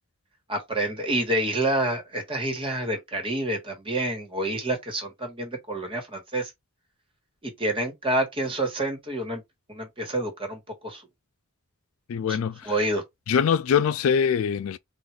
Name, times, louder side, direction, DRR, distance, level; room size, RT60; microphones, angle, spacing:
voice 1, 0.5-6.5 7.4-9.4 9.7-11.0 12.3-12.4 12.6-13.0, right 1 dB, 25° right, 1.6 m, -28 dB
voice 2, 12.1-12.7 13.3-14.8, left 7 dB, 65° left, 0.3 m, -23 dB
3.9 x 2.6 x 4.7 m
head